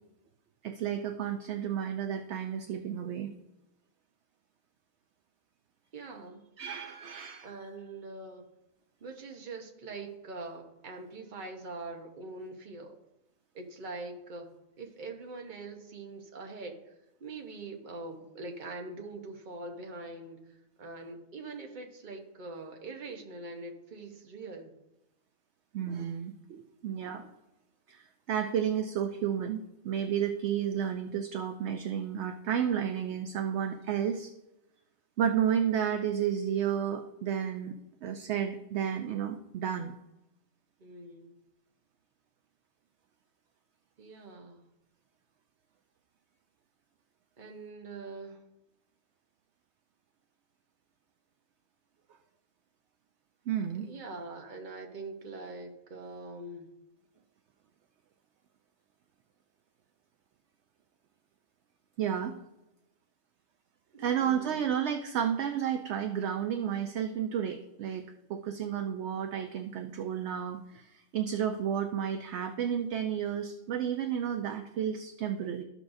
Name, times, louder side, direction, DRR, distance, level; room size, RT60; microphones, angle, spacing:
voice 1, 0.6-3.3 6.6-7.5 25.7-27.3 27.9-34.3 35.2-37.7 38.0-39.9 53.5-53.9 62.0-62.4 64.0-75.6, right 9 dB, 65° right, 6 dB, 0.7 m, -32 dB
voice 2, 5.9-6.4 7.4-8.5 9.0-13.0 13.5-16.9 17.2-24.7 40.8-41.4 44.0-44.7 47.4-48.4 53.7-56.7 63.9-64.8, right 3 dB, 40° right, 3 dB, 1.0 m, -43 dB
13.5 x 6.2 x 2.6 m, 0.93 s
omnidirectional pair, 1.4 m